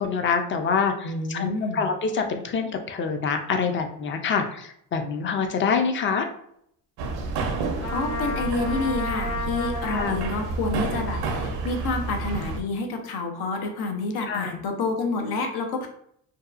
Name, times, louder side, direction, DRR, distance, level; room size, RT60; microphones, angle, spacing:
voice 1, 0.0-6.3 9.9-10.2 14.2-14.6, left 5 dB, 30° left, 6 dB, 0.4 m, -26 dB
voice 2, 1.0-1.9 7.9-15.9, left 3 dB, 70° left, 3 dB, 0.7 m, -28 dB
sound 1, 7.0-12.6, right 3 dB, 70° right, 0.6 m, -30 dB
Trumpet, 7.8-10.3, left 3 dB, 90° left, 1.4 m, -32 dB
2.7 x 2.3 x 2.4 m, 0.70 s
cardioid pair, 85°, 39 cm